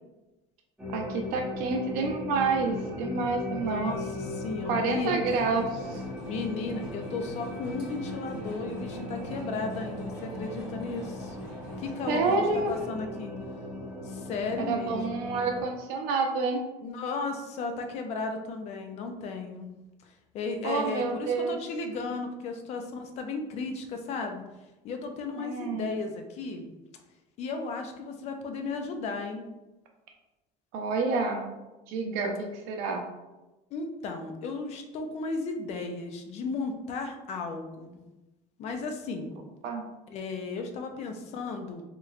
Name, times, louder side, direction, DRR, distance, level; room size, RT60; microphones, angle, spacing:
sound 1, 0.8-15.6, left 1 dB, 5° right, 0.6 m, -38 dB
voice 1, 0.9-3.9 4.7-6.0 12.1-12.7 14.7-16.6 20.6-21.6 25.4-25.9 30.7-31.4 31.9-33.0 39.6-39.8, right 4 dB, 70° right, 2 dB, 0.6 m, -28 dB
voice 2, 3.5-5.2 6.3-11.4 11.8-13.3 14.0-15.2 16.8-19.7 20.3-24.4 24.8-26.6 27.4-29.5 33.7-38.0 38.6-39.3 40.1-41.8, left 4 dB, 45° left, 5 dB, 0.4 m, -35 dB
sound 2, 5.2-12.8, equal, 80° left, 1.4 m, -47 dB
3.1 x 3.0 x 2.4 m, 1.1 s
cardioid pair, 160°, 16 cm